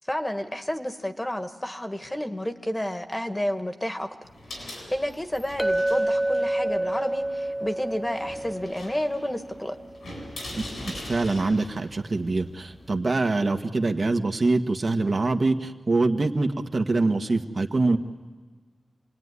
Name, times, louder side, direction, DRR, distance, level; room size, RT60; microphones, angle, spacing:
voice 1, 0.1-4.1 4.5-9.8, left 1 dB, 15° left, 6 dB, 1.6 m, -31 dB
sound 1, 4.2-13.0, left 1 dB, 85° left, 8.0 m, -42 dB
Chink clink, 5.6-10.0, right 1 dB, 5° right, 0.8 m, -28 dB
voice 2, 10.8-18.0, right 3 dB, 50° right, 4 dB, 1.5 m, -24 dB
28.0 x 20.0 x 9.8 m, 1.4 s
wide cardioid pair, 80°, 0 cm